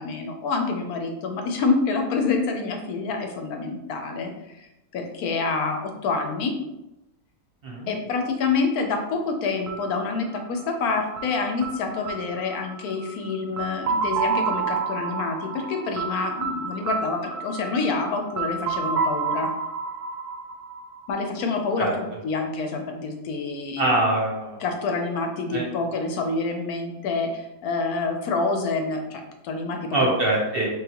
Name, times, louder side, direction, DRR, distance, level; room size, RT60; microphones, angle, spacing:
voice 1, 0.0-6.6 7.9-19.5 21.1-23.9 24.6-30.1, left 4 dB, 75° left, 4 dB, 1.1 m, -27 dB
sound 1, 9.7-21.4, right 4 dB, 80° right, 1.1 m, -30 dB
voice 2, 23.8-24.6 25.5-25.6 29.9-30.7, right 2 dB, 45° right, -2 dB, 0.8 m, -23 dB
3.9 x 3.3 x 2.9 m, 0.93 s
omnidirectional pair, 1.6 m